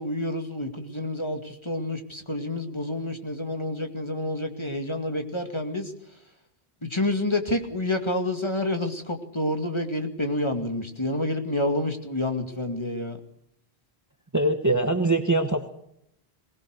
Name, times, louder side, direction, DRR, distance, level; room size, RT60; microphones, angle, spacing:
voice 1, 0.0-5.9 6.8-13.2, left 1 dB, 25° left, 5 dB, 2.3 m, -28 dB
voice 2, 14.3-15.7, right 2 dB, 15° right, 7 dB, 1.3 m, -23 dB
22.0 x 19.0 x 6.5 m, 0.74 s
omnidirectional pair, 1.1 m